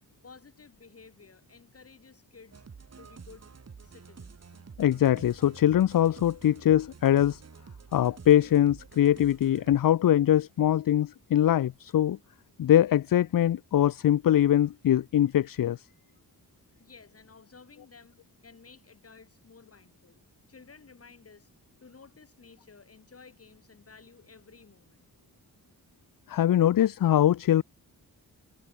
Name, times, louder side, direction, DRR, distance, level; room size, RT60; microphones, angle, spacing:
voice 1, 0.2-2.6 3.0-3.5 3.8-4.6 16.8-20.2 20.5-21.5 21.8-25.1, left 5 dB, 40° left, 6.9 m, -54 dB
sound 1, 2.5-9.8, right 5 dB, 45° right, 4.4 m, -49 dB
voice 2, 4.8-7.4 7.9-12.2 12.6-15.8 26.3-27.6, left 11 dB, 65° left, 0.7 m, -22 dB
wide cardioid pair, 140°, 36 cm